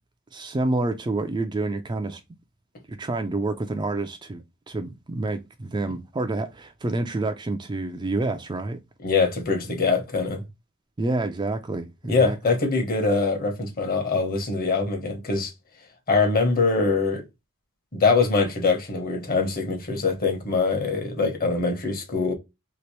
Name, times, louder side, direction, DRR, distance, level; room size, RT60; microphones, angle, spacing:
voice 1, 0.3-2.2 2.9-8.8 11.0-12.4, right 2 dB, 20° right, 0.4 m, -28 dB
voice 2, 9.0-10.4 12.1-15.5 16.1-17.2 17.9-22.3, left 4 dB, 40° left, 1.1 m, -23 dB
3.0 x 2.9 x 3.0 m
head